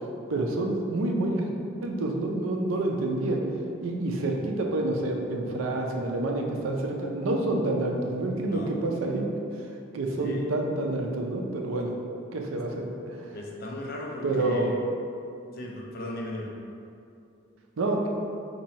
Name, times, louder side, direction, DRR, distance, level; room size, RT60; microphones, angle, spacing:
voice 1, 0.3-1.5 1.8-3.4 3.8-9.7 9.9-11.9 12.3-13.4 14.2-14.8 17.8-18.1, right 2 dB, 85° right, 1 dB, 0.4 m, -28 dB
voice 2, 13.3-14.8 15.5-16.5, left 1 dB, 50° left, -1 dB, 0.4 m, -36 dB
2.8 x 2.6 x 4.1 m, 2.6 s
head